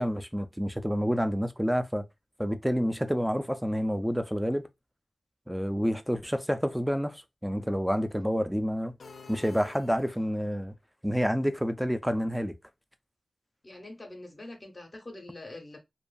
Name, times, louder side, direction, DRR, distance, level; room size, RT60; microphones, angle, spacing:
voice 1, 0.0-2.0 2.4-4.7 5.5-8.9 9.3-10.7 11.0-12.5, equal, 5° right, 0.4 m, -28 dB
sound 1, 9.0-10.6, left 4 dB, 75° left, 0.4 m, -49 dB
voice 2, 13.6-15.8, left 2 dB, 35° left, 0.7 m, -44 dB
2.6 x 2.4 x 2.2 m
wide cardioid pair, 70°, 0 cm